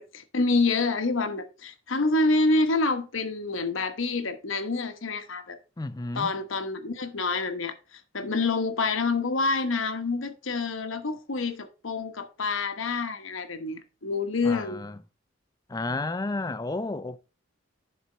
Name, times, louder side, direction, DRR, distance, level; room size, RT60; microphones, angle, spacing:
voice 1, 0.0-5.6 6.1-14.8, left 3 dB, 85° left, 1.1 m, -27 dB
voice 2, 5.8-6.3 14.4-15.0 15.7-17.2, left 2 dB, 20° left, 0.4 m, -32 dB
10.5 x 4.3 x 4.0 m
head